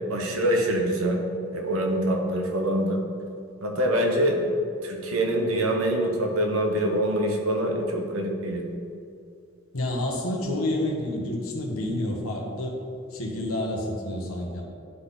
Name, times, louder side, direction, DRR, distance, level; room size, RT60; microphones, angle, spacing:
voice 1, 0.1-1.2 1.5-3.0 3.6-4.5 4.8-8.6, right 1 dB, 90° right, 1 dB, 1.1 m, -25 dB
voice 2, 9.7-12.8 13.1-14.6, left 1 dB, 85° left, 0 dB, 1.3 m, -29 dB
11.0 x 4.0 x 3.9 m, 2.4 s
head